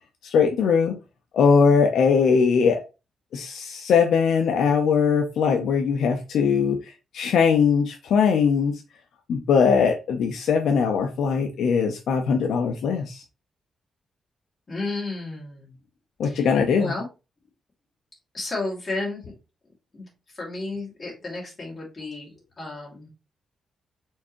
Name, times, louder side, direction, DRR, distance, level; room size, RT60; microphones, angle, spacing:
voice 1, 0.2-1.0 1.3-2.8 3.3-6.8 7.1-8.7 9.3-13.2 16.2-16.9, left 6 dB, 70° left, 0.6 m, -20 dB
voice 2, 14.7-15.7 16.2-17.1 18.3-19.3 19.9-20.1 20.4-22.3 22.6-23.1, left 2 dB, 25° left, 2.5 m, -32 dB
4.5 x 3.5 x 3.0 m
wide cardioid pair, 175°, 0 cm